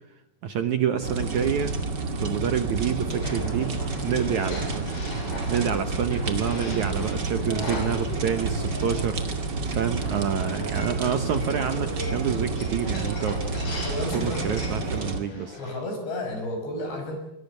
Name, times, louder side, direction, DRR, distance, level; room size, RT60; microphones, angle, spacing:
voice 1, 0.4-1.8 2.2-4.9 5.5-9.2 9.7-13.4 14.1-15.6, right 8 dB, 65° right, 9 dB, 1.9 m, -27 dB
sound 1, 1.0-15.2, right 3 dB, 35° right, 2.1 m, -29 dB
sound 2, 3.1-15.7, left 1 dB, 60° left, 8.9 m, -39 dB
voice 2, 13.9-14.5 14.9-15.1 15.6-17.2, left 1 dB, 85° left, 5 dB, 8.6 m, -32 dB
23.5 x 22.5 x 8.1 m, 0.87 s
omnidirectional pair, 4.8 m